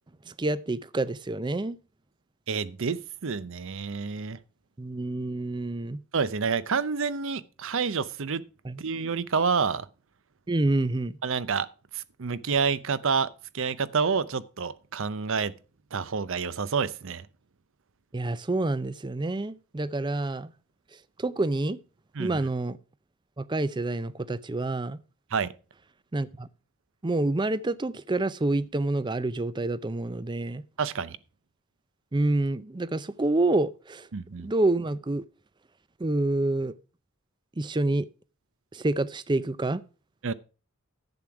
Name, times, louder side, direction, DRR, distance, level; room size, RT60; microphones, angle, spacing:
voice 1, 0.3-1.8 4.8-6.0 8.6-8.8 10.5-11.2 18.1-20.5 21.2-21.8 22.2-22.8 23.4-25.0 26.1-26.5 27.0-30.6 32.1-34.1 34.4-35.2 36.0-36.7 37.6-38.1 38.7-39.8, right 2 dB, 20° right, 0.5 m, -27 dB
voice 2, 2.5-4.4 6.1-8.4 8.8-9.9 11.2-11.7 11.9-13.3 13.5-15.5 15.9-17.3 22.1-22.4 25.3-25.5 30.8-31.2 34.1-34.5 40.2-40.3, right 5 dB, 60° right, 0.6 m, -28 dB
11.0 x 7.7 x 4.7 m
head